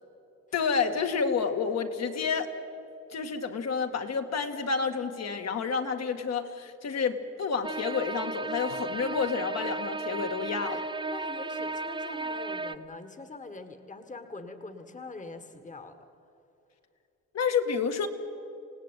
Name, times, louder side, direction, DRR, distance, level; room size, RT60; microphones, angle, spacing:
voice 1, 0.5-2.5 3.1-10.8 17.3-18.1, left 5 dB, 60° left, 5 dB, 2.2 m, -29 dB
sound 1, 7.6-12.7, right 3 dB, 15° right, 1.3 m, -34 dB
voice 2, 10.6-16.0, left 3 dB, 25° left, 8 dB, 1.7 m, -43 dB
27.5 x 17.5 x 9.1 m, 2.7 s
cardioid pair, 90°, 30 cm